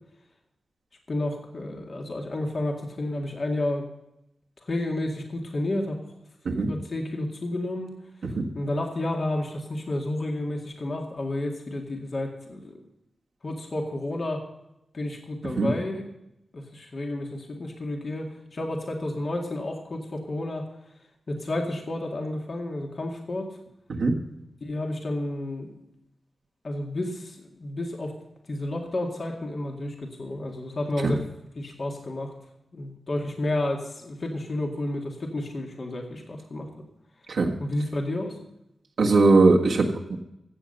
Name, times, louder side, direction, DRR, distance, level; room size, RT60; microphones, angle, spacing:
voice 1, 1.1-3.9 4.6-6.0 6.5-7.9 8.5-12.7 13.4-14.5 14.9-16.0 16.5-20.6 21.3-23.6 24.6-25.7 26.6-28.2 28.5-31.2 31.6-32.3 32.7-36.7 37.6-38.4, left 1 dB, 55° left, 1 dB, 2.1 m, -31 dB
voice 2, 39.0-40.2, right 3 dB, 80° right, -2 dB, 1.6 m, -20 dB
15.0 x 7.6 x 5.5 m, 0.85 s
cardioid pair, 65°, 0 cm